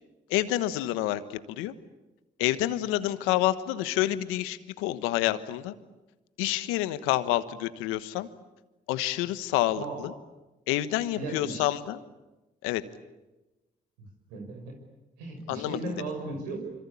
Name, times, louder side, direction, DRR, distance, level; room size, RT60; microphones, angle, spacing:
voice 1, 0.3-1.7 2.4-5.7 6.4-8.3 8.9-10.1 10.7-12.0 12.6-12.8 15.5-15.9, left 15 dB, 85° left, 13 dB, 1.3 m, -28 dB
voice 2, 11.2-11.7 14.3-14.7 15.2-16.6, right 3 dB, 90° right, 3 dB, 6.1 m, -36 dB
27.0 x 25.5 x 8.6 m, 1.1 s
hypercardioid pair, 50°, 21 cm